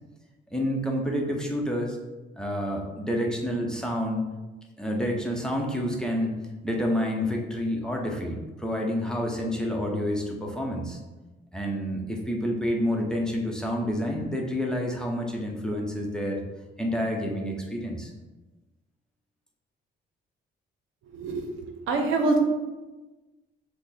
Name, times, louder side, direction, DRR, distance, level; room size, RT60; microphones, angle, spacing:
voice 1, 0.5-2.0 2.4-4.3 4.8-6.4 6.6-11.0 11.5-16.4 16.8-18.1, equal, 5° left, -1 dB, 0.8 m, -28 dB
voice 2, 21.1-22.4, right 2 dB, 85° right, 3 dB, 0.8 m, -26 dB
5.8 x 2.2 x 4.2 m, 1.2 s
cardioid pair, 90°, 20 cm